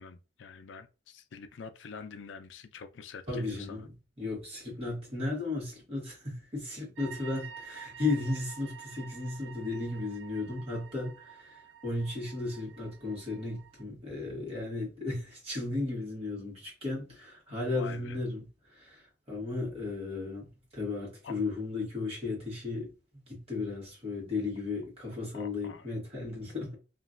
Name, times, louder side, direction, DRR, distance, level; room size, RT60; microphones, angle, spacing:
voice 1, 0.0-3.9 15.8-15.9 17.5-18.2 21.2-21.3 25.3-26.0, left 5 dB, 85° left, 0.4 m, -46 dB
voice 2, 3.3-22.9 23.3-26.7, left 3 dB, 35° right, 1.4 m, -35 dB
sound 1, 7.0-13.8, right 7 dB, 80° right, 0.4 m, -49 dB
3.0 x 2.5 x 2.4 m
head